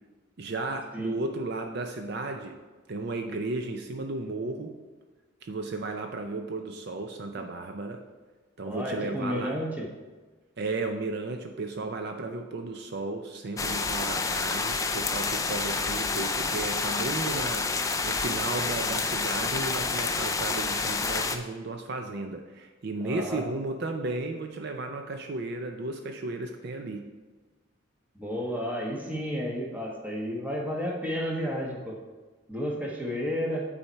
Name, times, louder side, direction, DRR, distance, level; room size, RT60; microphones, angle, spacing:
voice 1, 0.4-2.6 2.9-4.8 5.4-8.0 8.6-9.6 10.6-17.7 18.0-27.0, right 2 dB, 55° right, 4 dB, 0.5 m, -34 dB
voice 2, 8.6-9.9 23.0-23.4 28.1-32.0 32.5-33.7, equal, 10° right, -2 dB, 1.1 m, -32 dB
sound 1, 13.6-21.4, left 4 dB, 15° left, 0.3 m, -29 dB
8.7 x 4.2 x 4.5 m, 1.3 s
head